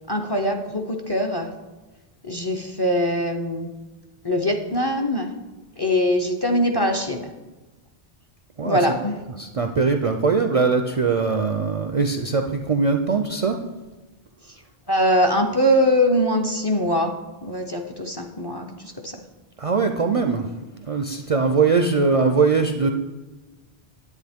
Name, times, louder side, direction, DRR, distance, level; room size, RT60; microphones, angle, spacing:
voice 1, 0.1-1.5 2.3-3.7 4.2-5.3 5.8-7.3 8.6-9.2 14.9-17.1 17.4-19.1, equal, 30° left, 4 dB, 0.5 m, -22 dB
voice 2, 9.4-13.6 19.6-20.5 20.7-22.9, right 4 dB, 50° right, 5 dB, 0.4 m, -21 dB
10.0 x 8.2 x 3.5 m, 1.2 s
omnidirectional pair, 1.1 m